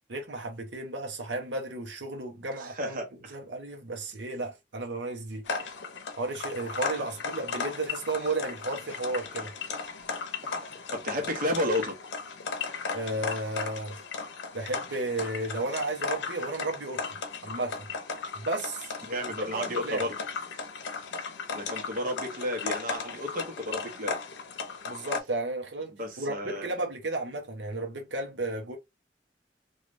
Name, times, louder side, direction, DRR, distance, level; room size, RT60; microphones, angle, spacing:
voice 1, 0.1-3.0 3.3-5.7 6.2-9.5 12.9-14.0 14.5-17.0 17.4-17.9 18.3-18.9 19.5-20.1 24.9-28.8, right 2 dB, 85° right, 0.8 m, -33 dB
voice 2, 2.6-3.4 7.0-7.1 10.4-10.6 10.9-11.9 19.1-20.1 21.0-21.1 21.5-24.1 25.9-26.7, left 1 dB, 50° right, 0.9 m, -32 dB
sound 1, 5.5-25.2, left 4 dB, 80° left, 0.6 m, -36 dB
3.1 x 2.4 x 2.5 m
head